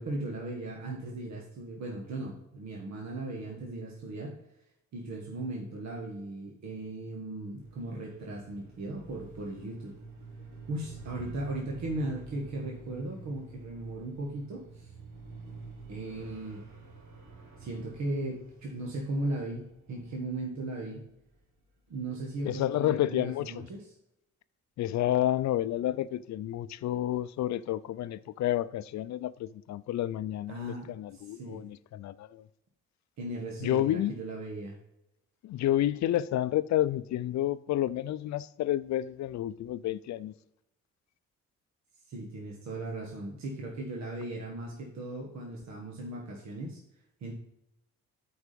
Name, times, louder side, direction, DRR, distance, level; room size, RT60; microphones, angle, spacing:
voice 1, 0.0-4.3 4.9-9.9 10.7-14.9 15.9-16.6 17.6-19.6 19.9-21.0 21.9-23.9 30.5-30.9 31.1-31.6 33.2-34.8 42.1-46.8 47.2-47.3, right 2 dB, 65° right, 1.6 m, -37 dB
sound 1, 7.6-21.6, right 3 dB, 80° right, 2.0 m, -48 dB
voice 2, 22.4-23.5 24.8-32.4 33.6-34.2 35.4-40.3, left 13 dB, 65° left, 0.5 m, -30 dB
8.2 x 4.8 x 5.1 m
cardioid pair, 90°, 30 cm